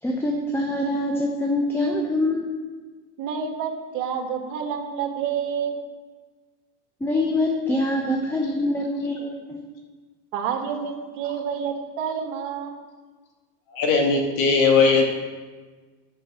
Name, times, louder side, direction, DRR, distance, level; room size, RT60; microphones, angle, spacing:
voice 1, 0.0-2.5 7.0-9.6, left 1 dB, 5° left, 1 dB, 0.8 m, -24 dB
voice 2, 3.2-5.7 10.3-12.8, right 7 dB, 65° right, 3 dB, 1.7 m, -29 dB
voice 3, 13.7-15.1, left 4 dB, 50° left, 1 dB, 2.3 m, -18 dB
8.1 x 6.0 x 7.3 m, 1.4 s
supercardioid pair, 130°, 44 cm